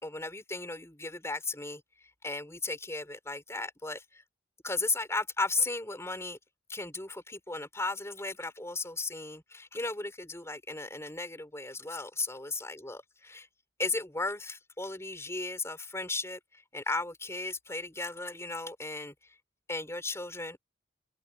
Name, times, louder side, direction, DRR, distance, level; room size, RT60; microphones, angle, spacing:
voice 1, 0.0-1.8 2.2-4.2 4.6-6.4 6.7-13.5 13.8-19.3 19.7-20.6, left 3 dB, 15° left, 5.2 m, -35 dB
head